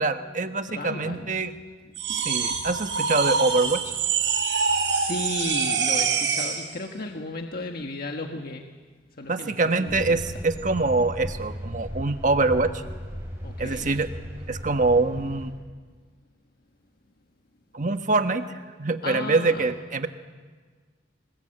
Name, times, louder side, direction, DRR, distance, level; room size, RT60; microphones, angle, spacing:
voice 1, 0.0-1.5 2.1-3.9 9.3-12.7 13.6-14.1 14.5-15.5 17.7-18.4 18.8-20.1, right 3 dB, 45° right, 8 dB, 1.3 m, -24 dB
voice 2, 0.7-1.3 2.1-2.2 2.5-2.6 4.9-8.7 9.2-10.2 13.4-14.0 19.0-19.7, left 2 dB, 55° left, 3 dB, 1.5 m, -34 dB
sound 1, 1.9-6.7, right 6 dB, 80° right, 5.7 m, -25 dB
sound 2, 9.8-15.5, equal, 15° right, 7.2 m, -36 dB
28.0 x 20.5 x 8.8 m, 1.5 s
head